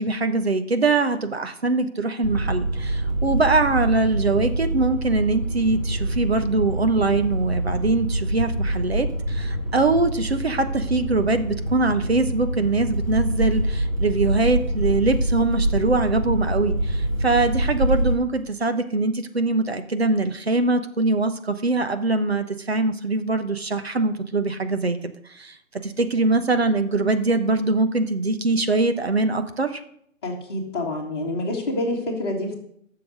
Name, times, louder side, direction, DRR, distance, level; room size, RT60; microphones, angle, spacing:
voice 1, 0.0-29.8, right 3 dB, 50° right, 8 dB, 1.0 m, -23 dB
sound 1, 2.2-18.1, right 1 dB, 25° right, 1.8 m, -25 dB
voice 2, 30.2-32.5, left 1 dB, 20° left, -3 dB, 1.9 m, -27 dB
12.0 x 7.0 x 6.5 m, 0.71 s
figure-of-eight pair, 165°, 41 cm